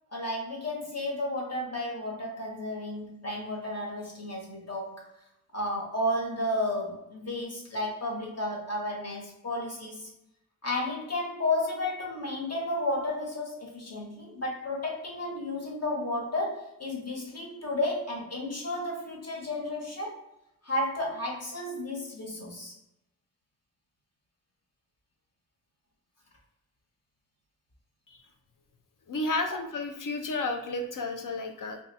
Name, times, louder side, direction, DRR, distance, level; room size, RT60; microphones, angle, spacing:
voice 1, 0.1-5.1 5.5-10.1 10.6-20.2 20.6-22.8, left 1 dB, 50° left, -2 dB, 1.2 m, -32 dB
voice 2, 29.1-31.8, left 2 dB, 65° left, 5 dB, 0.6 m, -32 dB
2.5 x 2.4 x 4.0 m, 0.84 s
cardioid pair, 55°, 34 cm